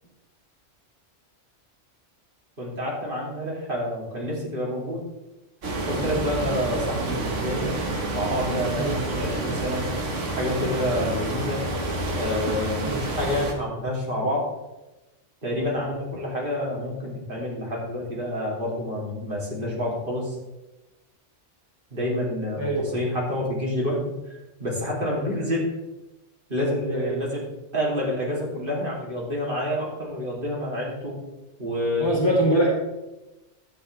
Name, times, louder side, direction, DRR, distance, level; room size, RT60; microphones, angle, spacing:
voice 1, 2.6-5.0 5.8-7.7 8.1-9.9 10.3-11.6 12.1-14.6 15.4-20.4 21.9-24.3 24.6-25.7 26.5-31.2 31.6-32.6, left 1 dB, 45° right, -4 dB, 3.3 m, -28 dB
sound 1, 5.6-13.5, right 2 dB, 85° right, 1.8 m, -28 dB
voice 2, 22.6-23.0 25.2-25.3 26.9-27.2 32.0-32.7, right 1 dB, 20° left, -3 dB, 2.3 m, -24 dB
12.0 x 9.5 x 3.4 m, 0.99 s
omnidirectional pair, 1.2 m